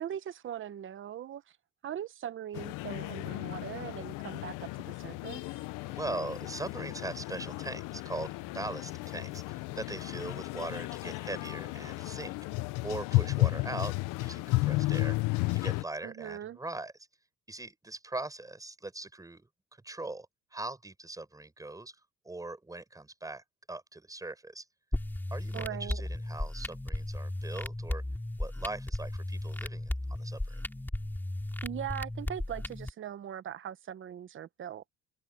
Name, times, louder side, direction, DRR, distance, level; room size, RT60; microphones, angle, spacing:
voice 1, 0.0-1.4 1.8-4.7 5.0-5.4 16.0-16.6 25.5-26.0 31.6-34.8, right 10 dB, 40° right, 1.0 m, -40 dB
sound 1, 2.5-15.8, left 21 dB, 80° left, 0.8 m, -33 dB
voice 2, 5.9-12.4 12.8-15.2 15.5-16.9 17.5-24.7 25.3-28.0 28.4-30.6, right 2 dB, 10° right, 7.4 m, -41 dB
sound 2, 24.9-32.9, left 1 dB, 5° left, 2.7 m, -35 dB
open air
cardioid pair, 130°, 31 cm